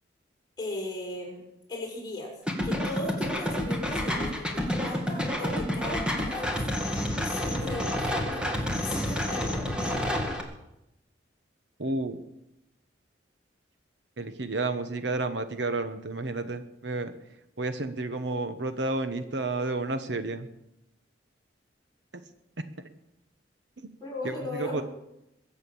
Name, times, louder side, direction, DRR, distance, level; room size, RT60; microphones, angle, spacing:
voice 1, 0.6-1.4 1.7-2.3 2.6-6.6 7.2-10.1 24.0-24.8, left 1 dB, 20° left, -3 dB, 5.6 m, -37 dB
sound 1, 2.5-10.4, left 1 dB, 5° right, 2.0 m, -29 dB
voice 2, 11.8-12.2 14.2-17.1 17.6-20.5 23.8-23.9 24.2-24.8, right 2 dB, 65° right, 9 dB, 1.1 m, -31 dB
22.5 x 8.1 x 7.1 m, 0.86 s
head